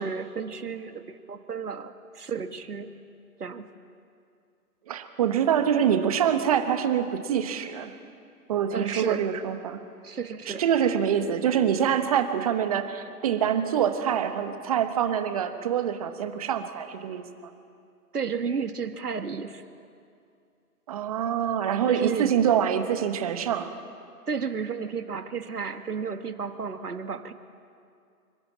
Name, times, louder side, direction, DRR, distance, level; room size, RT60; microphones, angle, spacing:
voice 1, 0.0-2.9 3.4-3.7 8.7-9.3 10.0-10.6 18.1-19.6 21.8-22.7 24.3-27.3, right 6 dB, 75° right, 8 dB, 2.0 m, -32 dB
voice 2, 4.9-7.9 8.5-9.8 10.5-17.2 20.9-23.7, right 9 dB, 25° right, 9 dB, 1.2 m, -25 dB
26.0 x 22.0 x 8.6 m, 2.4 s
figure-of-eight pair, 150°, 46 cm